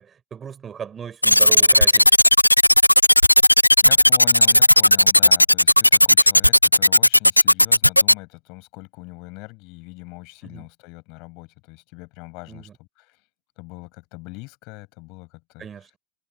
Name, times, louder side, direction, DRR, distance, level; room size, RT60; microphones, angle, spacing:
voice 1, 0.0-2.1 10.4-10.6 12.5-12.7 15.6-16.0, right 7 dB, 20° right, 5.6 m, -36 dB
sound 1, 1.2-8.1, left 1 dB, 85° left, 0.4 m, -13 dB
voice 2, 3.8-13.2 13.6-15.7, left 28 dB, 45° left, 7.9 m, -41 dB
figure-of-eight pair, 90°, 0 cm